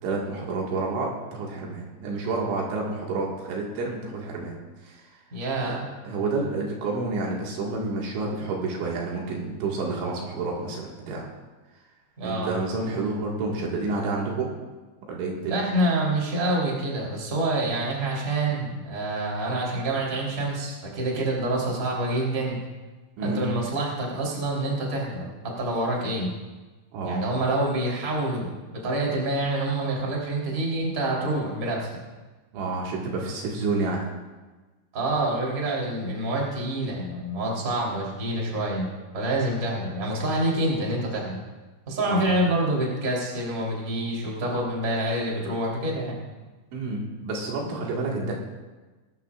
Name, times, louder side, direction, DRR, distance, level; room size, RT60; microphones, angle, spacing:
voice 1, 0.0-4.6 4.8-5.1 5.6-5.8 6.0-11.3 12.2-14.5 15.1-15.6 23.2-23.5 26.9-27.2 32.5-34.1 42.1-42.3 46.7-48.4, right 3 dB, 70° right, -2 dB, 4.2 m, -29 dB
voice 2, 5.3-5.8 12.2-12.6 15.5-22.6 23.2-26.3 27.0-31.9 34.9-38.9 39.1-41.4 41.9-46.2, right 1 dB, 20° right, -3 dB, 3.1 m, -27 dB
23.0 x 13.0 x 2.5 m, 1.2 s
omnidirectional pair, 5.7 m